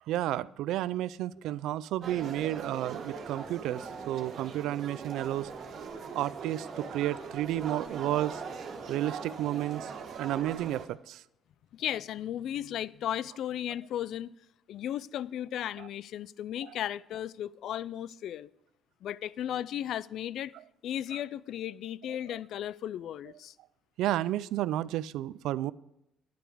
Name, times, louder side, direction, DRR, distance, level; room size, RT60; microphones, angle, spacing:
voice 1, 0.1-5.5 6.1-8.4 8.8-11.2 16.6-16.7 24.0-25.7, right 14 dB, 80° right, 0.3 m, -32 dB
sound 1, 2.0-10.9, right 5 dB, 60° right, 1.6 m, -41 dB
voice 2, 11.7-14.3 14.7-18.5 19.0-20.5 20.8-23.5, left 11 dB, 70° left, 0.3 m, -35 dB
10.5 x 9.1 x 4.8 m
cardioid pair, 105°, 0 cm